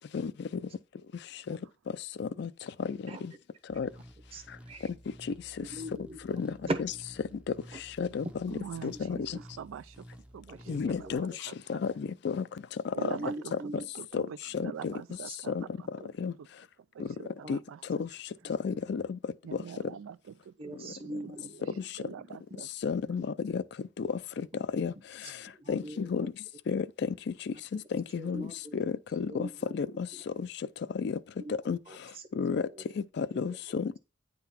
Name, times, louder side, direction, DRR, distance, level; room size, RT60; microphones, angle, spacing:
sound 1, 3.7-11.2, equal, 5° right, 0.5 m, -52 dB
voice 1, 4.3-4.9 5.6-6.2 6.6-7.0 7.7-7.8 8.5-8.6 8.9-9.0 9.3-9.4 10.5-11.2 12.0-12.1 13.1-13.9 15.2-15.4 17.2-17.6 18.0-18.1 18.7-18.8 20.6-21.6 22.1-22.2 22.5-22.6 25.2-26.3 27.5-27.8 28.2-28.7 29.1-30.2 31.4-31.6 31.9-32.8 33.3-33.4, right 1 dB, 30° right, 0.8 m, -42 dB
voice 2, 8.0-8.5 9.1-9.2 10.7-11.3 11.7-11.8 12.4-12.5 14.1-14.2 14.6-14.7 15.6-15.7 16.2-16.3 17.5-17.6 18.6-19.0 22.8-23.2 23.5-23.6 24.8-24.9 25.7-26.3 26.7-26.8 28.2-28.4 29.2-29.5 29.8-29.9 31.7-31.8 32.4-32.6 33.2-34.0, left 5 dB, 55° left, 0.3 m, -31 dB
voice 3, 8.5-9.2 9.6-9.9 10.3-10.6 11.0-11.1 11.5-11.6 13.0-13.3 14.0-14.4 14.6-15.5 16.9-17.8 19.4-20.2 20.5-20.9 22.0-22.7, right 7 dB, 90° right, 0.3 m, -43 dB
9.2 x 3.9 x 4.2 m
head